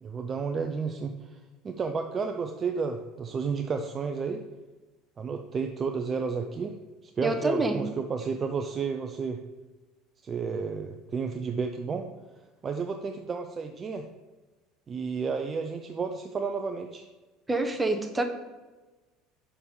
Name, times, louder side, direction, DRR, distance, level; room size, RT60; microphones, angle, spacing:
voice 1, 0.0-1.4 1.6-4.4 5.2-6.8 7.0-9.4 10.2-12.1 12.6-14.1 14.9-17.1, right 5 dB, 35° right, 5 dB, 0.5 m, -31 dB
voice 2, 7.2-7.8 17.5-18.2, right 2 dB, 15° right, 6 dB, 0.9 m, -27 dB
5.8 x 5.5 x 3.7 m, 1.2 s
hypercardioid pair, 70°, 0 cm